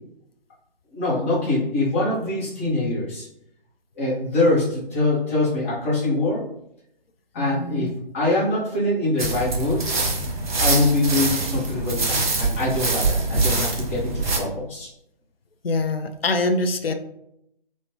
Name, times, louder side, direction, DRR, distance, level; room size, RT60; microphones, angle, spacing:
voice 1, 0.9-3.3 4.0-6.5 7.3-7.9 8.1-9.9 10.6-14.9, left 2 dB, 15° left, -7 dB, 0.7 m, -23 dB
voice 2, 7.4-7.9 15.6-16.9, left 2 dB, 80° left, 8 dB, 0.5 m, -24 dB
sound 1, 9.2-14.4, right 3 dB, 55° right, 1.0 m, -24 dB
3.1 x 2.0 x 3.1 m, 0.75 s
figure-of-eight pair, 145°, 29 cm